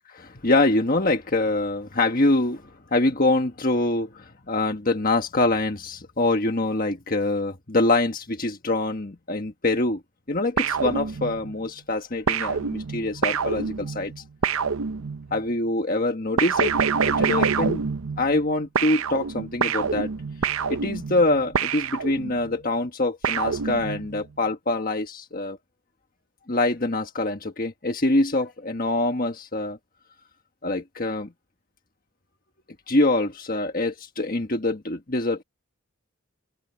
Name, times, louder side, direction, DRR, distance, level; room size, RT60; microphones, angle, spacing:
voice 1, 0.2-10.0 10.3-14.1 15.3-16.7 17.0-17.8 18.2-20.1 20.7-25.6 26.5-29.8 30.6-31.3 32.9-35.4, left 2 dB, 40° left, 1.5 m, -24 dB
sound 1, 10.6-11.6 12.3-15.4 16.4-18.5 18.8-22.5 23.2-24.2, right 6 dB, 80° right, 0.7 m, -26 dB
head